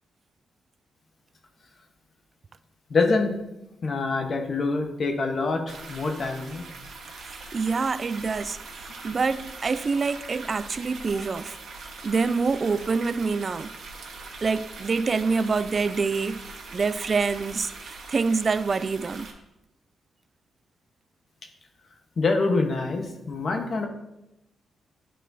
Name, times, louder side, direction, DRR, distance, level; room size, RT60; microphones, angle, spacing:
voice 1, 2.9-3.4 3.8-6.6 22.2-23.9, left 3 dB, 55° left, 1.1 m, -25 dB
sound 1, 5.7-19.3, right 3 dB, 70° right, 1.2 m, -42 dB
voice 2, 7.3-8.6 9.0-11.6 12.0-13.7 14.4-16.4 16.7-19.3, right 4 dB, 45° right, 0.3 m, -26 dB
10.0 x 4.3 x 2.7 m
cardioid pair, 75°, 0 cm